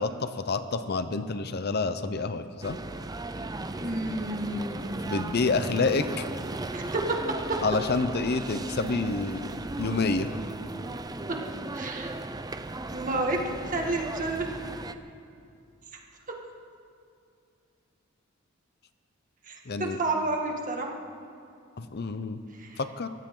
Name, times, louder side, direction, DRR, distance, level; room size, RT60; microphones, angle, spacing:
voice 1, 0.0-2.8 5.0-6.2 7.6-10.3 19.7-20.0 21.8-22.4 22.8-23.1, left 3 dB, 50° left, 10 dB, 0.7 m, -28 dB
sound 1, 2.6-14.9, right 2 dB, 20° right, 0.5 m, -36 dB
voice 2, 3.7-5.0 6.7-7.2 11.7-12.1 12.9-14.5 19.5-20.9 22.6-22.8, right 2 dB, 40° right, 1 dB, 2.0 m, -30 dB
23.5 x 16.0 x 3.9 m, 2.5 s
head